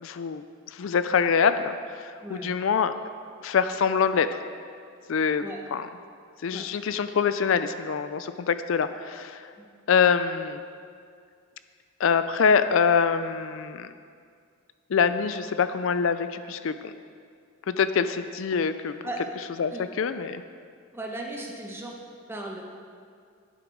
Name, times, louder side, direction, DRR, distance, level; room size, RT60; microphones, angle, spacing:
voice 1, 0.0-0.4 0.7-2.9 3.4-4.4 5.1-5.5 5.7-5.9 6.4-9.4 9.9-10.6 12.0-13.9 14.9-16.9 17.7-19.0 19.6-20.4, left 6 dB, 60° left, 11 dB, 0.4 m, -25 dB
voice 2, 2.2-2.6 5.4-5.6 6.5-6.6 9.6-9.7 19.0-19.2 19.7-19.8 20.9-21.9 22.3-22.6, right 1 dB, 10° right, 0 dB, 1.0 m, -36 dB
11.0 x 9.0 x 4.6 m, 2.2 s
head